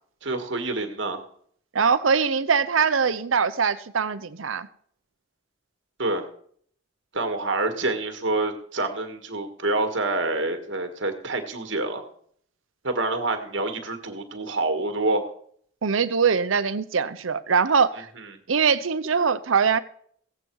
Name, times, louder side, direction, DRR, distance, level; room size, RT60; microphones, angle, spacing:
voice 1, 0.2-1.2 6.0-6.3 7.1-12.0 12.8-15.3 18.2-18.3, right 2 dB, 70° right, 6 dB, 1.7 m, -27 dB
voice 2, 1.7-4.7 15.8-18.1 18.5-19.8, right 6 dB, 85° right, 13 dB, 0.7 m, -22 dB
16.0 x 8.1 x 4.7 m, 0.62 s
head